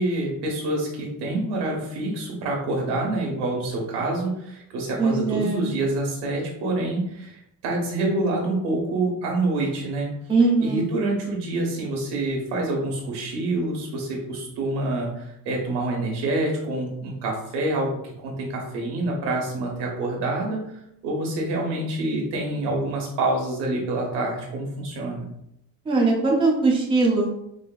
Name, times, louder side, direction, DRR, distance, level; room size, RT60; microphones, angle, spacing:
voice 1, 0.0-10.1 10.6-25.3, right 2 dB, 90° right, 0 dB, 1.2 m, -27 dB
voice 2, 5.0-5.7 10.3-10.8 25.9-27.3, right 3 dB, 15° right, -1 dB, 0.4 m, -20 dB
4.5 x 2.6 x 2.3 m, 0.78 s
cardioid pair, 175°, 39 cm